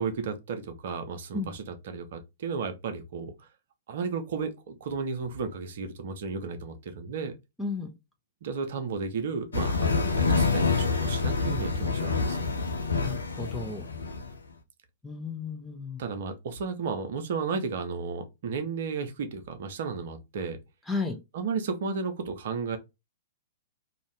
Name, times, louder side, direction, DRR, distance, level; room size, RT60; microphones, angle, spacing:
voice 1, 0.0-3.5 3.9-7.3 8.4-12.5 16.0-20.6 21.3-22.8, right 5 dB, 55° right, 0.6 m, -33 dB
voice 2, 7.6-7.9 13.0-13.9 15.0-16.0 20.9-21.2, left 4 dB, 5° left, 0.6 m, -33 dB
sound 1, 9.5-14.3, left 4 dB, 75° left, 0.5 m, -27 dB
2.6 x 2.4 x 3.1 m
figure-of-eight pair, 105°, 0 cm